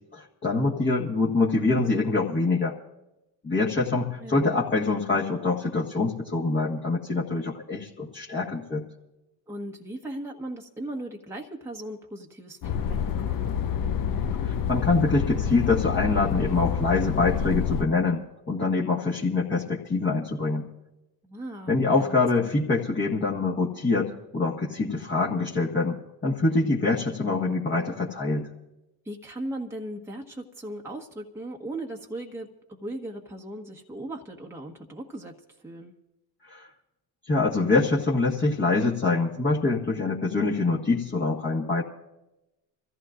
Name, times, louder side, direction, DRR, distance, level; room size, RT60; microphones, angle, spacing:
voice 1, 0.1-2.8 3.4-8.9 14.4-18.2 18.5-20.7 21.7-28.5 36.5-36.7 37.3-41.8, left 3 dB, 25° left, -4 dB, 1.7 m, -25 dB
voice 2, 4.2-4.5 9.5-13.5 21.2-22.5 29.0-35.9, right 1 dB, 5° right, 0 dB, 1.3 m, -38 dB
sound 1, 12.6-17.8, left 8 dB, 45° left, 1.0 m, -27 dB
26.5 x 14.5 x 2.5 m, 0.96 s
hypercardioid pair, 80°, 49 cm